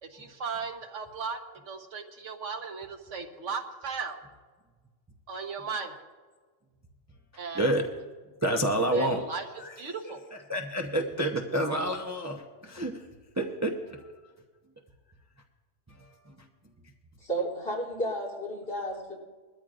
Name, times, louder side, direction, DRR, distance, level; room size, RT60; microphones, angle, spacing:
voice 1, 0.0-1.4 1.7-4.2 5.3-6.0 7.4-7.6 8.9-10.2, right 5 dB, 80° right, 5 dB, 1.5 m, -36 dB
voice 2, 8.4-9.2 9.6-9.7 10.5-13.0 13.4-14.0, right 1 dB, 15° right, 2 dB, 0.8 m, -28 dB
voice 3, 17.2-19.1, right 1 dB, 50° left, -3 dB, 3.6 m, -32 dB
22.0 x 13.5 x 2.5 m, 1.4 s
omnidirectional pair, 1.2 m